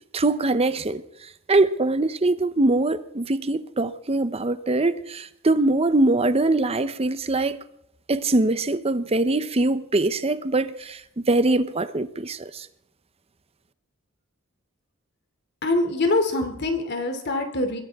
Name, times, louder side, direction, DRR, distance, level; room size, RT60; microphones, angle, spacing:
voice 1, 0.1-7.6 8.1-11.0 11.3-12.7, right 2 dB, 30° right, 0.8 m, -23 dB
voice 2, 15.6-17.8, left 2 dB, 55° left, 2.8 m, -24 dB
22.0 x 15.0 x 3.6 m
head